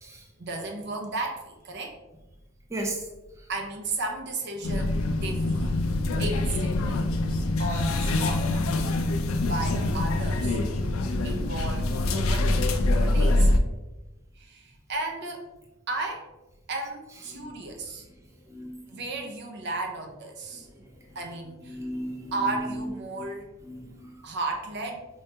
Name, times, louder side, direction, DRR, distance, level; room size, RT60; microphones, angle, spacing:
voice 1, 0.4-2.0 2.8-2.9 3.5-5.9 6.2-7.0 7.6-8.7 9.4-10.6 11.2-13.5 14.3-15.4 15.9-16.2 16.7-18.1 18.9-20.7 21.1-21.8 22.3-23.5 24.2-25.1, right 2 dB, 55° right, 2 dB, 0.6 m, -34 dB
voice 2, 2.7-3.0 17.3-17.5 18.5-18.8 21.7-22.3 23.7-24.1, right 1 dB, 15° right, -1 dB, 0.4 m, -35 dB
sound 1, 4.6-13.6, left 2 dB, 85° left, 0.4 m, -25 dB
4.5 x 2.2 x 2.8 m, 1.0 s
head